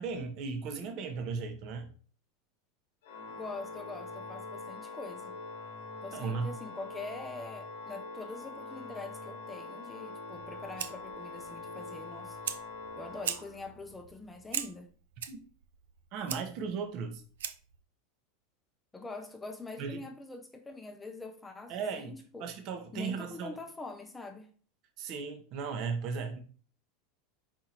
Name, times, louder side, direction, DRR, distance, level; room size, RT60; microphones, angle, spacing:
voice 1, 0.0-1.9 6.1-6.5 15.3-15.4 16.1-17.2 19.8-20.0 21.7-23.6 25.0-26.4, right 5 dB, 50° right, 0.8 m, -36 dB
Organ, 3.0-13.9, left 3 dB, 80° left, 0.9 m, -44 dB
voice 2, 3.3-5.4 6.0-12.4 13.0-14.9 18.9-22.5 22.9-24.5, left 3 dB, 15° left, 0.5 m, -44 dB
Fire, 10.3-17.8, right 9 dB, 85° right, 0.4 m, -42 dB
4.3 x 3.6 x 2.9 m
supercardioid pair, 120°, 0 cm